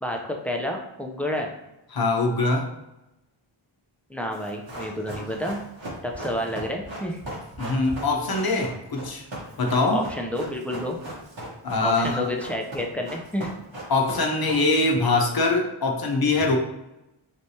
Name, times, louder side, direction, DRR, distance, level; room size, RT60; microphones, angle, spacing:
voice 1, 0.0-1.5 4.1-5.6 6.0-7.2 9.9-11.0 11.8-13.5, left 1 dB, 5° left, 0 dB, 0.5 m, -29 dB
voice 2, 1.9-2.7 7.6-9.2 9.6-10.0 11.6-12.2 13.9-16.6, left 3 dB, 45° left, 1 dB, 0.8 m, -23 dB
Run, 4.3-14.9 15.2-15.3, right 1 dB, 65° right, 1.2 m, -38 dB
3.2 x 3.2 x 2.7 m, 0.94 s
wide cardioid pair, 50°, 49 cm